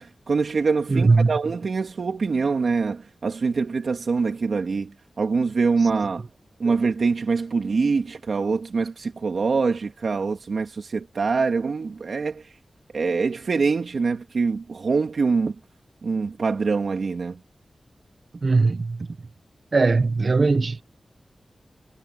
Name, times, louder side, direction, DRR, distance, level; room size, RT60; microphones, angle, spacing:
voice 1, 0.0-6.2 6.6-12.4 12.9-15.5 16.0-17.4, right 4 dB, 75° right, 3.2 m, -24 dB
voice 2, 0.9-1.3 6.6-6.8 18.4-19.1 19.7-20.8, right 3 dB, 55° right, 1.3 m, -20 dB
wide cardioid pair, 85°, 0 cm